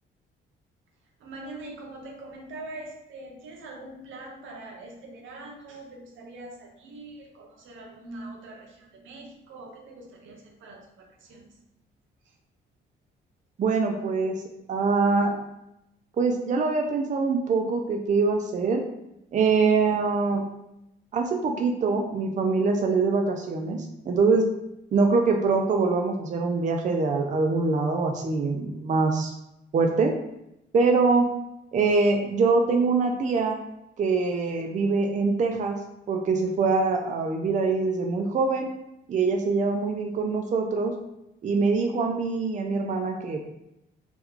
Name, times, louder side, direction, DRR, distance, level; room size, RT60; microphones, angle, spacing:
voice 1, 1.2-11.6 12.2-12.3, right 2 dB, 80° right, 1 dB, 0.7 m, -43 dB
voice 2, 13.6-14.4 14.7-15.4 16.2-18.8 19.3-20.5 21.1-24.5 24.9-29.3 29.7-30.1 30.7-31.3 31.7-33.6 34.0-35.8 36.1-38.7 39.1-40.9 41.4-43.4, right 4 dB, 40° right, 3 dB, 0.4 m, -24 dB
3.0 x 2.3 x 3.5 m, 0.85 s
cardioid pair, 90°, 20 cm